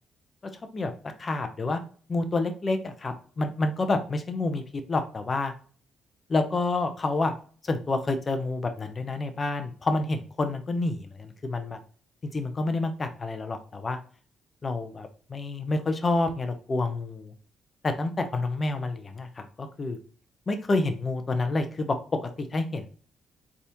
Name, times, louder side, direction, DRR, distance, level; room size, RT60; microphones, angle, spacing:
voice 1, 1.2-1.8 2.1-4.6 4.9-5.5 6.3-7.3 7.6-11.8 12.3-14.0 14.6-17.3 17.8-20.0 20.5-22.0 22.2-22.9, left 2 dB, 35° left, 7 dB, 0.7 m, -28 dB
4.0 x 3.6 x 2.9 m, 0.42 s
cardioid pair, 90°, 0 cm